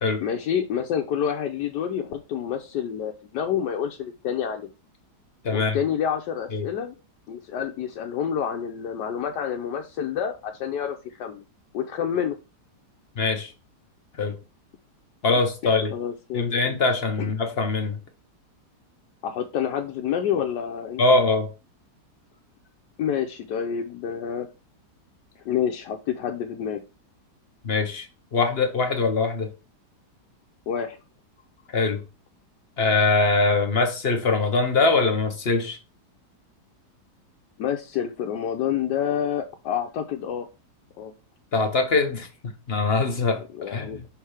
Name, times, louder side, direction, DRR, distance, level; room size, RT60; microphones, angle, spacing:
voice 1, 0.2-4.7 5.5-6.9 7.3-11.4 11.7-12.4 15.6-16.7 17.2-17.3 19.2-21.0 23.0-24.5 25.4-26.8 30.7-31.0 37.6-40.5 41.0-41.1 43.5-44.1, left 8 dB, 80° left, 1.2 m, -28 dB
voice 2, 5.4-5.8 6.5-6.6 13.2-13.5 14.2-14.4 15.2-15.9 16.3-18.0 21.0-21.5 27.6-28.1 28.3-29.5 31.7-32.0 32.8-35.8 41.5-42.3 42.7-44.0, left 3 dB, 50° left, 0.8 m, -22 dB
5.9 x 3.6 x 4.8 m
omnidirectional pair, 1.8 m